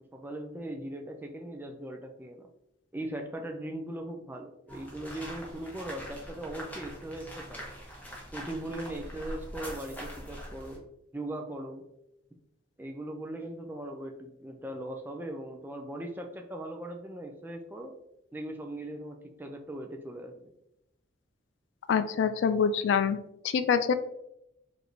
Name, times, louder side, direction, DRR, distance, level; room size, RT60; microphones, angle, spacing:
voice 1, 0.1-2.5 2.9-7.7 8.3-10.8 11.1-11.8 12.8-18.0 18.3-20.5, right 1 dB, 10° right, 3 dB, 0.4 m, -39 dB
sound 1, 4.7-10.8, equal, 10° left, 0.9 m, -43 dB
voice 2, 21.9-23.2 23.4-23.9, left 6 dB, 70° left, 11 dB, 0.3 m, -25 dB
4.9 x 2.6 x 3.1 m, 0.81 s
head